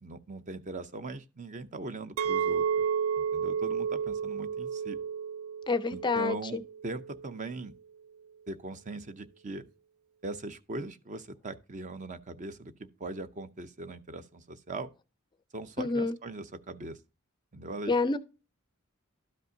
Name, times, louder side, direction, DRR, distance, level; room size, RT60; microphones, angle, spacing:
voice 1, 0.0-2.9 3.2-5.0 5.9-7.7 8.5-9.6 10.2-14.9 15.5-17.0 17.5-18.0, right 2 dB, 35° right, 0.6 m, -40 dB
Chink clink, 2.2-7.3, right 7 dB, 85° right, 0.4 m, -32 dB
voice 2, 5.7-6.6 15.8-16.1 17.9-18.2, left 3 dB, 20° left, 0.4 m, -28 dB
12.5 x 5.3 x 2.7 m
head